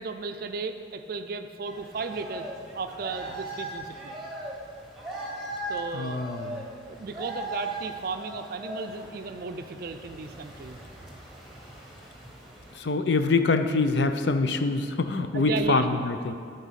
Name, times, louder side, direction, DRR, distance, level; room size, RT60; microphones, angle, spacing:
voice 1, 0.0-2.5 2.7-4.1 5.7-6.2 6.9-10.8 15.3-15.9, right 4 dB, 50° right, 7 dB, 0.4 m, -34 dB
sound 1, 1.6-12.8, right 1 dB, ahead, 1.1 m, -39 dB
voice 2, 5.9-6.7 12.7-16.3, left 3 dB, 70° left, 8 dB, 0.5 m, -25 dB
10.0 x 4.0 x 7.4 m, 2.3 s
head